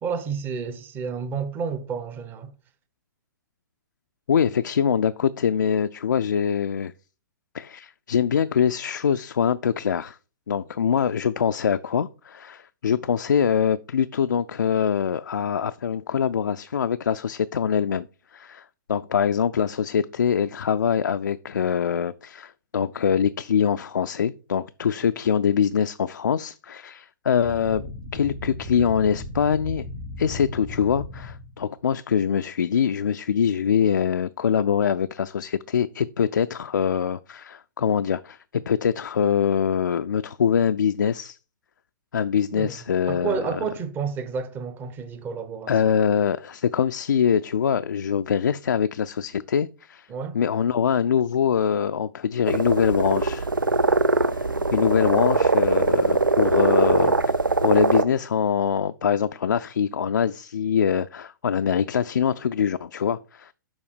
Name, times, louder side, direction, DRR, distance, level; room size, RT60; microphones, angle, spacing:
voice 1, 0.0-2.5 42.5-42.8 43.1-45.7 50.1-50.4, right 6 dB, 20° right, 0.8 m, -30 dB
voice 2, 4.3-6.9 7.5-10.2 10.5-18.1 18.3-29.9 30.2-41.4 42.1-43.6 45.7-50.1 50.3-53.5 54.3-57.2 57.6-63.5, left 7 dB, 65° left, 0.4 m, -23 dB
sound 1, 27.4-31.7, left 2 dB, 35° right, 2.2 m, -36 dB
sound 2, 52.5-58.0, right 3 dB, 80° right, 0.6 m, -21 dB
7.1 x 4.9 x 5.0 m
figure-of-eight pair, 115°, 11 cm